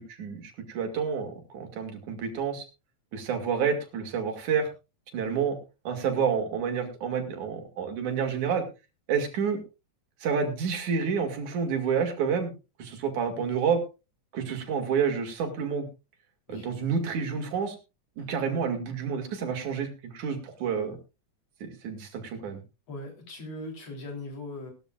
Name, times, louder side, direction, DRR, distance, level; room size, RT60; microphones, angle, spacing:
voice 1, 0.0-2.7 3.1-4.7 5.1-5.6 5.9-8.6 9.1-9.6 10.2-12.5 12.8-13.8 14.3-15.9 16.5-17.8 18.2-21.0 21.6-22.6, right 6 dB, 75° right, 4 dB, 3.6 m, -29 dB
voice 2, 22.9-24.7, left 2 dB, 55° left, 2 dB, 4.6 m, -40 dB
19.5 x 12.5 x 2.4 m, 0.29 s
omnidirectional pair, 3.5 m